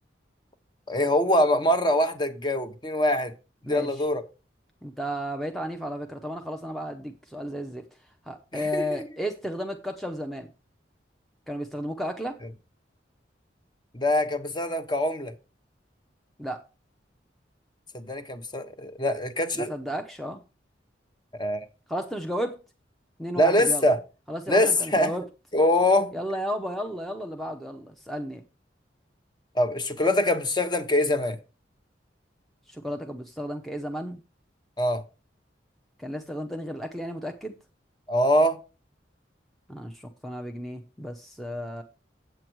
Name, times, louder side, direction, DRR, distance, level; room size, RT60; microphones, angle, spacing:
voice 1, 0.9-3.3 3.7-4.2 8.5-9.1 13.9-15.3 17.9-19.7 21.4-21.7 23.4-24.0 24.5-25.1 25.5-26.1 29.5-31.4 34.8-35.0 38.1-38.6, left 1 dB, 25° left, 0.9 m, -23 dB
voice 2, 3.6-4.0 4.8-7.8 8.2-10.5 11.5-12.4 16.4-16.6 19.5-20.4 21.9-22.6 23.2-23.9 24.3-25.2 26.1-28.4 32.7-34.2 36.0-37.5 39.7-41.8, equal, ahead, 0.6 m, -33 dB
7.9 x 7.6 x 4.5 m
head